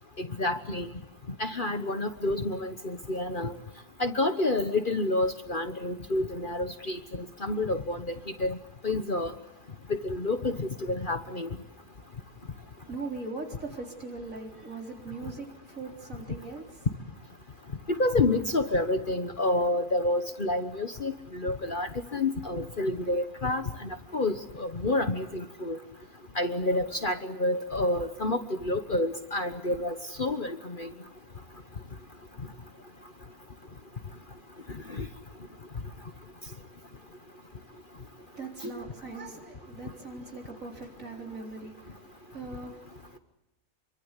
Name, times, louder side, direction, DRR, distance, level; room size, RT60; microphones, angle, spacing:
voice 1, 0.2-0.9 1.4-3.5 4.0-7.0 7.4-8.6 8.8-9.3 10.0-11.5 17.9-25.8 26.4-30.9 34.9-35.1, left 2 dB, 35° left, 1.3 m, -29 dB
voice 2, 12.8-16.9 38.2-43.2, right 3 dB, 60° right, 4.2 m, -40 dB
27.0 x 24.0 x 8.2 m
omnidirectional pair, 1.6 m